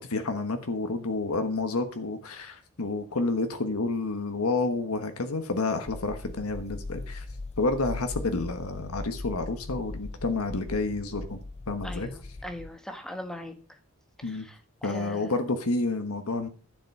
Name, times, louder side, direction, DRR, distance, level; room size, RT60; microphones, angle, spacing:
voice 1, 0.0-7.2 7.6-11.4 11.7-12.1 14.2-14.5 14.8-16.5, left 3 dB, 90° left, 7 dB, 1.2 m, -29 dB
sound 1, 5.9-12.7, left 2 dB, 30° left, 0.5 m, -39 dB
voice 2, 11.8-13.8 14.2-15.4, left 1 dB, 5° left, 6 dB, 1.3 m, -41 dB
11.5 x 7.3 x 5.4 m, 0.40 s
head